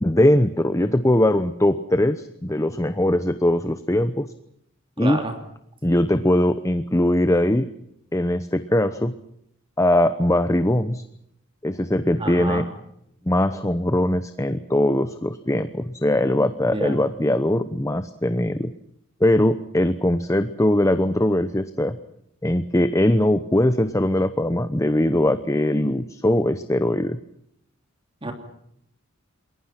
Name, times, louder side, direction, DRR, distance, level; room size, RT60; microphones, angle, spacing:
voice 1, 0.0-4.3 5.0-5.2 5.8-7.7 8.1-9.1 9.8-11.0 11.6-12.6 13.3-18.7 19.2-22.0 22.4-27.2, left 1 dB, 15° left, 10 dB, 0.9 m, -21 dB
voice 2, 5.0-5.4 12.2-12.7 16.7-17.0 28.2-28.3, right 2 dB, 25° right, 5 dB, 3.0 m, -29 dB
28.5 x 21.5 x 6.0 m, 0.74 s
head